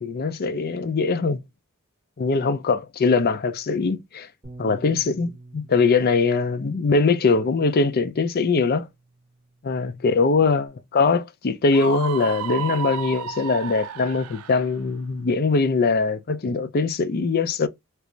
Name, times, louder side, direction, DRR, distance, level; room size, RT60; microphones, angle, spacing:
voice 1, 0.0-1.4 2.2-4.3 4.6-8.9 9.6-17.7, left 4 dB, 45° left, 0.4 m, -22 dB
Bass guitar, 4.4-10.7, right 2 dB, 20° right, 1.2 m, -48 dB
Screaming, 11.7-14.7, right 9 dB, 85° right, 0.4 m, -32 dB
3.3 x 2.5 x 3.0 m
head